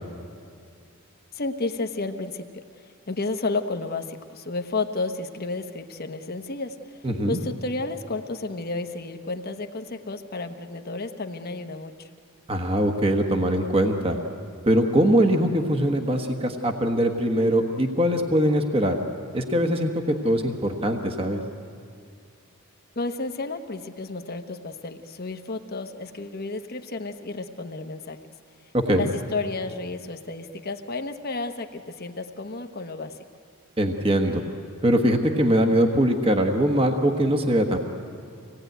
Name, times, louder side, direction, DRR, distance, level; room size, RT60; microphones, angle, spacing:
voice 1, 1.3-12.1 23.0-28.2 28.9-33.2, left 3 dB, 45° left, 7 dB, 1.1 m, -32 dB
voice 2, 7.0-7.4 12.5-14.2 14.6-19.0 19.3-21.4 28.8-29.1 33.8-34.4 34.8-37.8, equal, 25° right, 4 dB, 1.2 m, -22 dB
25.0 x 18.0 x 9.2 m, 2.4 s
head